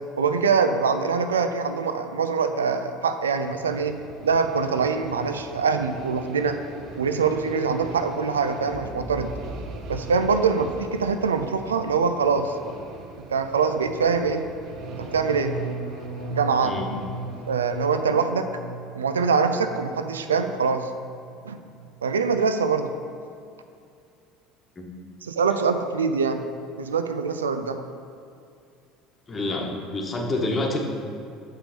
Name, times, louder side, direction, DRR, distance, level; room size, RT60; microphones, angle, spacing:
voice 1, 0.2-4.0 4.2-6.6 7.0-9.3 9.9-12.5 13.3-14.4 14.9-15.5 16.3-16.7 17.5-18.5 18.9-20.9 21.5-21.6 22.0-22.9 25.3-26.4 26.8-27.9, right 5 dB, 80° right, 8 dB, 0.4 m, -24 dB
sound 1, 3.4-18.1, right 4 dB, 55° right, 0.7 m, -42 dB
Boom, 8.7-12.9, right 1 dB, 5° right, 1.0 m, -40 dB
sound 2, 14.6-20.6 20.9-21.4 21.7-22.0, right 3 dB, 75° left, 0.7 m, -37 dB
voice 2, 29.3-30.8, left 2 dB, 25° left, 1 dB, 1.3 m, -27 dB
6.8 x 5.8 x 5.1 m, 2.4 s
figure-of-eight pair, 65°, 0 cm